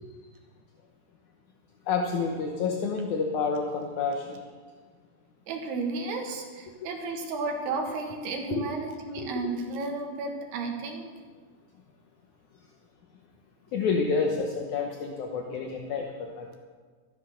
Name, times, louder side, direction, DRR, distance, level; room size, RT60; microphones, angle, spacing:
voice 1, 1.9-4.4 8.5-8.6 9.2-9.5 13.7-16.1 16.4-16.6, left 4 dB, 70° left, 2 dB, 1.8 m, -29 dB
voice 2, 5.5-11.1, right 3 dB, 75° right, 3 dB, 3.6 m, -33 dB
13.5 x 12.5 x 6.4 m, 1.5 s
omnidirectional pair, 4.7 m